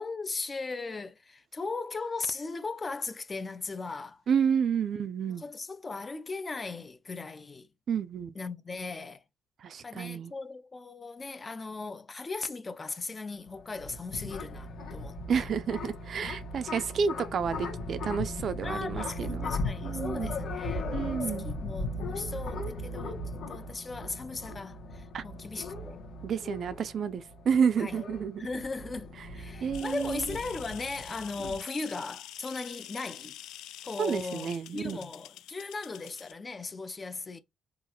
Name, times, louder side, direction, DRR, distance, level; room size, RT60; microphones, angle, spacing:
voice 1, 0.0-4.2 5.4-7.7 8.4-9.2 9.8-15.4 16.2-16.3 18.6-20.9 21.4-26.1 27.8-28.0 28.4-33.4 33.8-37.4, left 3 dB, 25° left, 0.5 m, -38 dB
voice 2, 4.3-5.4 7.9-8.3 9.6-10.3 15.3-19.5 19.8-20.3 20.9-21.5 25.1-25.2 26.2-28.4 29.6-30.4 31.4-31.6 34.0-35.0, right 6 dB, 50° right, 0.4 m, -30 dB
sound 1, 13.4-31.5, left 2 dB, 60° left, 1.3 m, -38 dB
sound 2, 29.7-36.3, left 13 dB, 85° left, 0.3 m, -46 dB
3.8 x 2.5 x 2.9 m
cardioid pair, 115°, 0 cm